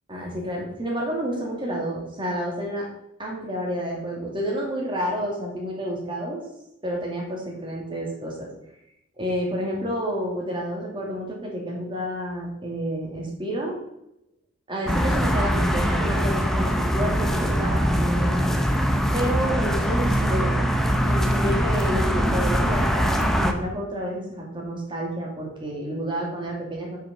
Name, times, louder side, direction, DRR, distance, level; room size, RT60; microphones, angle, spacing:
voice 1, 0.1-2.9 3.2-6.4 6.8-8.5 9.2-13.8 14.7-18.6 19.1-20.6 21.0-27.0, equal, 25° right, -2 dB, 2.7 m, -30 dB
sound 1, 14.9-23.5, equal, ahead, 0.7 m, -22 dB
9.1 x 5.7 x 5.4 m, 0.81 s
head